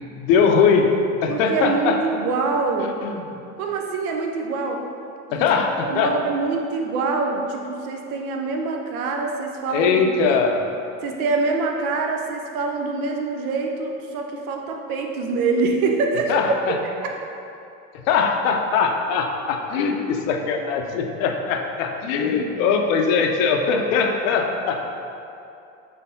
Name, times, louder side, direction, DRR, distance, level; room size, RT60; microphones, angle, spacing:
voice 1, 0.1-0.9 1.2-2.0 2.8-3.2 5.3-6.1 9.7-10.6 16.3-16.8 18.1-24.8, left 5 dB, 70° left, 4 dB, 0.6 m, -21 dB
voice 2, 1.3-2.9 3.6-4.9 5.3-5.5 5.8-10.0 10.3-10.4 11.0-16.9, right 3 dB, 80° right, 2 dB, 0.6 m, -25 dB
4.3 x 3.2 x 2.6 m, 2.7 s
hypercardioid pair, 80°, 42 cm